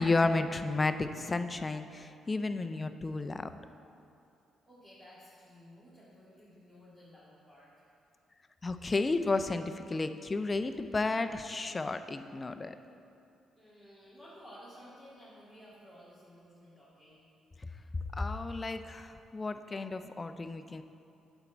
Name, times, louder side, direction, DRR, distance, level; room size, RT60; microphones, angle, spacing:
voice 1, 0.0-3.5 8.6-12.7 18.1-20.8, left 3 dB, 25° left, 9 dB, 0.4 m, -32 dB
voice 2, 4.7-7.9 13.6-17.3, equal, 10° right, -10 dB, 2.0 m, -54 dB
9.0 x 4.5 x 7.1 m, 2.6 s
cardioid pair, 90°, 0 cm